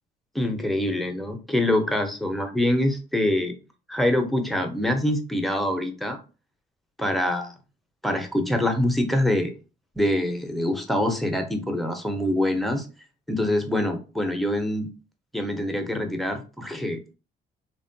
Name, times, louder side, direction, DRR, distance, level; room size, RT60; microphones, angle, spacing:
voice 1, 0.3-3.5 3.9-6.2 7.0-7.5 8.0-9.5 10.0-12.9 13.3-14.9 15.3-17.1, left 1 dB, ahead, 4 dB, 0.5 m, -25 dB
2.9 x 2.2 x 2.6 m, 0.34 s
cardioid pair, 90°, 20 cm